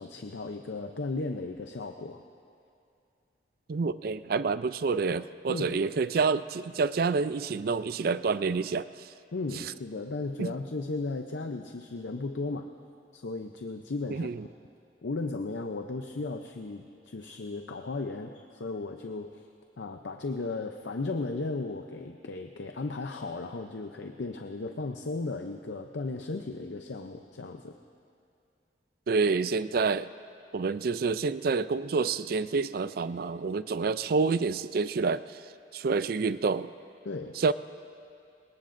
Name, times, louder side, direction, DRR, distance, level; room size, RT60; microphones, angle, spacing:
voice 1, 0.0-2.2 5.5-5.8 9.3-12.7 13.1-14.3 15.0-19.5 19.8-27.8 37.0-37.4, left 3 dB, 80° left, 5 dB, 0.6 m, -35 dB
voice 2, 3.7-8.9 10.4-10.5 14.1-14.4 29.1-30.1 30.5-35.2 35.7-36.7 37.4-37.5, right 4 dB, 55° right, 14 dB, 0.4 m, -28 dB
26.5 x 20.5 x 2.6 m, 2.5 s
head